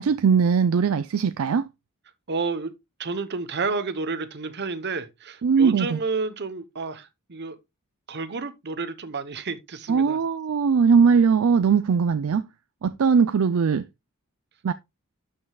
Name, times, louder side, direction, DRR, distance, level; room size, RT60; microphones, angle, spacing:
voice 1, 0.0-1.6 5.4-6.0 9.9-12.4 12.8-13.8 14.6-14.7, right 6 dB, 65° right, 0.4 m, -20 dB
voice 2, 2.3-2.7 3.0-7.6 8.1-10.2 11.9-12.0, right 4 dB, 50° right, 0.9 m, -30 dB
12.0 x 5.4 x 2.3 m
head